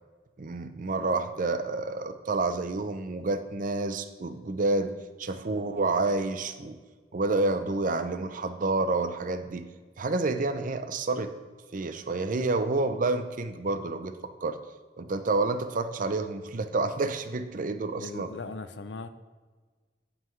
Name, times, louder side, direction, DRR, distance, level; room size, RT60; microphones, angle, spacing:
voice 1, 0.4-4.9 5.2-6.8 7.1-9.7 10.0-11.3 11.7-14.1 14.4-14.6 15.0-18.3, right 3 dB, 50° right, 10 dB, 0.6 m, -29 dB
voice 2, 18.0-19.1, left 3 dB, 80° left, 11 dB, 0.6 m, -39 dB
15.0 x 5.6 x 3.2 m, 1.4 s
head